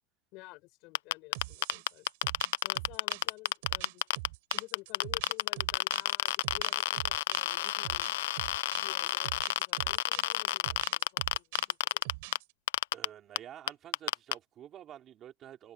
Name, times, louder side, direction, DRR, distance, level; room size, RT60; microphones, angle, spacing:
voice 1, 0.3-2.1 2.6-4.0 4.5-8.2 8.8-12.0, left 23 dB, 50° left, 4.9 m, -52 dB
sound 1, 1.0-4.3 4.5-12.4 12.7-13.1 13.4-13.5 13.7-14.3, left 14 dB, 90° left, 0.4 m, -29 dB
sound 2, 1.3-12.5, right 24 dB, 65° right, 3.3 m, -45 dB
voice 2, 12.9-15.7, right 11 dB, 30° right, 3.5 m, -49 dB
open air
supercardioid pair, 150°, 0 cm